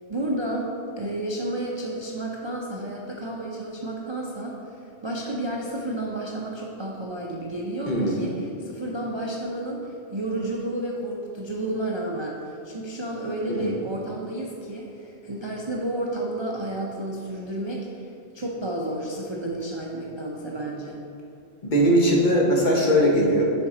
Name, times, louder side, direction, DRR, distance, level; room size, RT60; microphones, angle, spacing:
voice 1, 0.1-0.7 1.0-21.0, right 1 dB, 35° right, -3 dB, 0.5 m, -31 dB
voice 2, 7.9-8.3 13.5-13.7 21.6-23.5, equal, 45° left, -2 dB, 1.1 m, -20 dB
6.8 x 4.4 x 4.9 m, 2.7 s
omnidirectional pair, 1.2 m